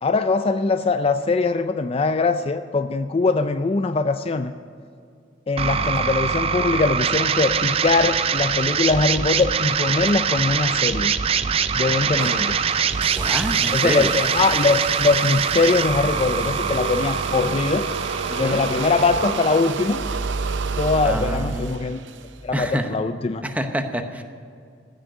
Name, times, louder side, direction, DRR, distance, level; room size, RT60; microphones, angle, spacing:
voice 1, 0.0-4.5 5.5-11.1 11.7-12.6 13.7-17.9 18.4-20.0 20.8-22.0 22.4-23.4, left 3 dB, 30° left, 9 dB, 0.4 m, -22 dB
voice 2, 5.6-5.9 11.8-12.5 13.1-14.2 18.3-18.6 21.0-21.7 22.5-23.0 23.4-24.2, equal, 10° right, 6 dB, 0.9 m, -28 dB
sound 1, 5.6-21.6, right 6 dB, 30° right, 0.4 m, -24 dB
sound 2, 12.2-22.4, right 6 dB, 85° right, 0.6 m, -32 dB
14.5 x 6.4 x 9.8 m, 2.3 s
head